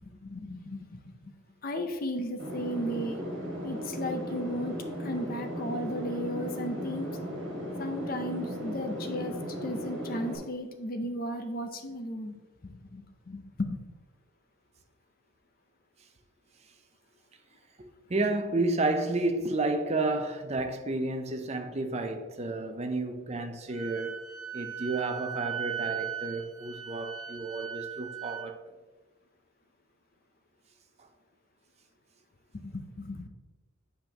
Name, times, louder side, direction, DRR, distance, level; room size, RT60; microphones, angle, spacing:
voice 1, 0.0-1.3 1.6-3.2 3.6-7.1 7.8-9.4 9.6-12.4 12.6-13.8 32.5-33.3, equal, 40° left, 0.6 m, -35 dB
sound 1, 2.4-10.4, equal, 55° right, 2.0 m, -36 dB
voice 2, 17.8-24.2 24.5-28.6, right 2 dB, 30° right, 0.5 m, -31 dB
Wind instrument woodwind instrument, 23.7-28.5, right 9 dB, 90° right, 1.1 m, -38 dB
7.9 x 5.1 x 2.9 m
head